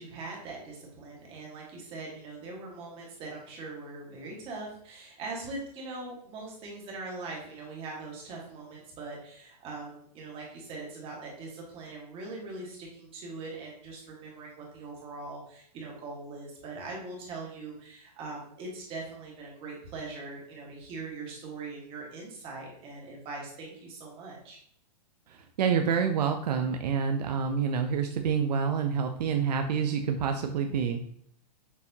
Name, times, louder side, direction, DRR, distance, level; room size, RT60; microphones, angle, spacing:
voice 1, 0.0-24.6, right 3 dB, 25° right, -2 dB, 1.4 m, -41 dB
voice 2, 25.3-31.0, right 6 dB, 75° right, 5 dB, 0.5 m, -27 dB
6.7 x 2.7 x 2.7 m, 0.67 s
hypercardioid pair, 145°, 21 cm